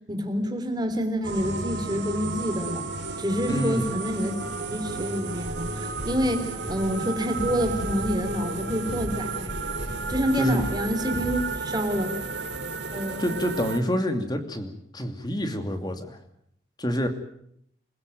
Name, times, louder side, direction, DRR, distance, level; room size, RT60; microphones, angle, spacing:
voice 1, 0.1-2.9 3.2-4.3 4.7-9.7 10.1-12.1 12.9-13.3, equal, 25° right, 6 dB, 3.6 m, -27 dB
sound 1, 1.2-13.8, right 3 dB, 85° right, 3.3 m, -33 dB
voice 2, 3.5-3.9 10.4-10.6 13.2-16.2 16.8-17.1, equal, 25° left, 7 dB, 2.7 m, -27 dB
sound 2, 5.4-12.2 12.4-12.5, equal, 60° left, 6.5 m, -37 dB
27.5 x 16.5 x 9.2 m, 0.72 s
head